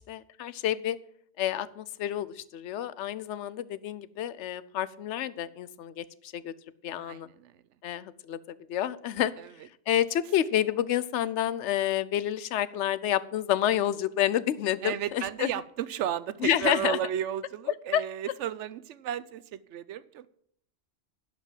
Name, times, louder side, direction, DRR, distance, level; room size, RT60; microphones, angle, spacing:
voice 1, 0.1-1.0 1.4-6.5 6.8-7.3 7.8-8.4 8.7-9.3 9.9-15.5 16.4-17.0 17.9-18.0, left 11 dB, 75° left, 17 dB, 0.9 m, -29 dB
voice 2, 7.0-7.6 9.4-9.5 14.8-20.3, right 10 dB, 80° right, 17 dB, 0.9 m, -33 dB
11.5 x 5.2 x 7.5 m, 0.68 s
omnidirectional pair, 1.2 m